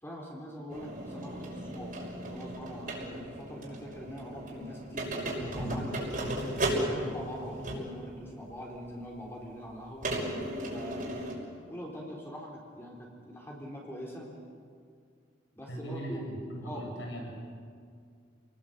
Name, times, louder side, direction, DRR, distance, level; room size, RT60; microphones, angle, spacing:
voice 1, 0.0-6.3 6.9-10.1 10.7-11.3 11.7-14.3 15.5-16.3 16.6-16.9, equal, 15° left, -2 dB, 4.0 m, -43 dB
sound 1, 0.7-8.0 8.8-8.9 10.0-11.3, right 1 dB, 45° right, 6.2 m, -35 dB
voice 2, 15.7-17.3, right 1 dB, 75° left, 0 dB, 7.7 m, -39 dB
29.5 x 20.0 x 8.2 m, 2.2 s
head